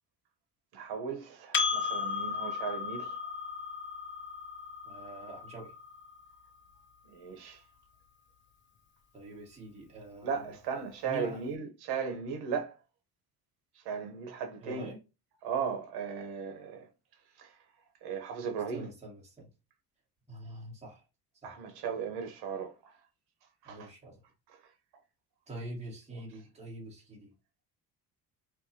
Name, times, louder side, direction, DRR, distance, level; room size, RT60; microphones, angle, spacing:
voice 1, 0.7-3.2 7.1-7.6 10.2-12.7 13.8-14.9 15.4-16.9 17.4-17.5 18.0-18.9 21.4-22.7 23.6-23.9, right 6 dB, 70° right, 0.9 m, -36 dB
Percussion, 1.5-6.4, left 5 dB, 30° left, 0.4 m, -35 dB
voice 2, 4.8-5.7 9.1-10.5 11.0-11.4 14.6-15.0 18.7-19.5 20.3-21.0 21.4-21.5 21.8-21.9 23.6-24.2 25.5-27.3, right 2 dB, 15° right, 1.4 m, -45 dB
4.6 x 2.3 x 2.7 m
cardioid pair, 165°, 40 cm